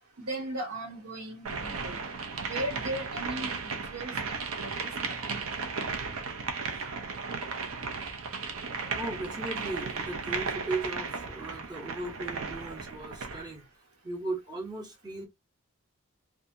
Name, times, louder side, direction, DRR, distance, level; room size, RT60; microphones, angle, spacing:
voice 1, 0.2-2.0 2.4-5.7 6.8-6.9, right 1 dB, 90° right, 1.3 m, -38 dB
sound 1, 1.4-13.5, right 4 dB, 70° right, 0.5 m, -35 dB
voice 2, 8.9-13.6 14.0-15.3, right 2 dB, 20° right, 0.8 m, -37 dB
2.7 x 2.3 x 2.6 m
head